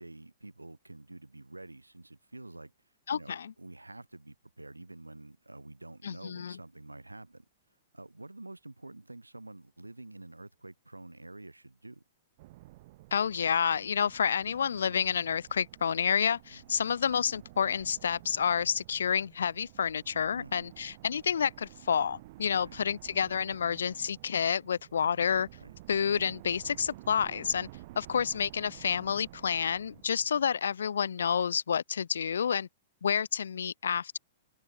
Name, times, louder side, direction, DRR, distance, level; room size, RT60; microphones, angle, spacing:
voice 1, 0.0-2.7 3.1-7.5 7.9-12.0 16.5-16.9 20.3-20.5 22.5-22.7 25.6-25.7, right 2 dB, 90° right, 7.4 m, -48 dB
voice 2, 3.1-3.5 6.0-6.6 13.1-25.5 25.9-27.7 28.0-32.7 33.0-34.2, left 7 dB, 70° left, 0.5 m, -29 dB
sound 1, 12.4-30.8, right 18 dB, 45° right, 1.9 m, -52 dB
open air
figure-of-eight pair, 110°, 0 cm